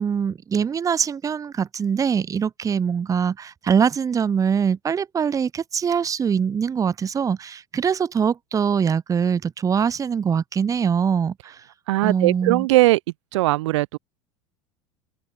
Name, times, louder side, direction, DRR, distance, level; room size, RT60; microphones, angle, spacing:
voice 1, 0.0-11.6 12.0-12.7, right 7 dB, 20° right, 0.6 m, -23 dB
voice 2, 11.9-13.0 13.3-14.0, right 19 dB, 65° right, 0.4 m, -19 dB
figure-of-eight pair, 75°, 17 cm